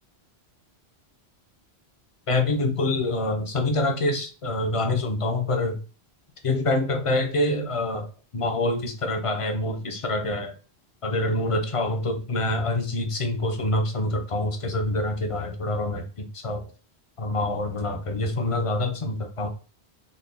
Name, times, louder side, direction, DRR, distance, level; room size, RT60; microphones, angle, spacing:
voice 1, 2.3-5.8 6.4-8.1 8.3-10.5 11.0-16.7 17.2-19.5, left 2 dB, 45° left, 5 dB, 0.4 m, -26 dB
3.8 x 2.1 x 3.4 m, 0.35 s
omnidirectional pair, 1.1 m